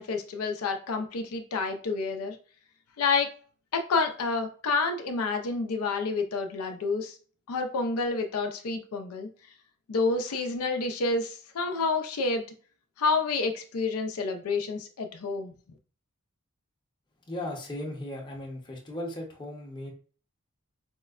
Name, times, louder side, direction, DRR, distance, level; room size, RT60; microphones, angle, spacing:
voice 1, 0.0-2.4 3.0-3.3 3.7-7.1 7.5-9.3 9.9-12.4 13.0-15.5, left 4 dB, 85° left, 5 dB, 0.4 m, -29 dB
voice 2, 17.3-19.9, left 1 dB, 20° left, 0 dB, 0.7 m, -37 dB
4.3 x 2.1 x 2.3 m, 0.41 s
head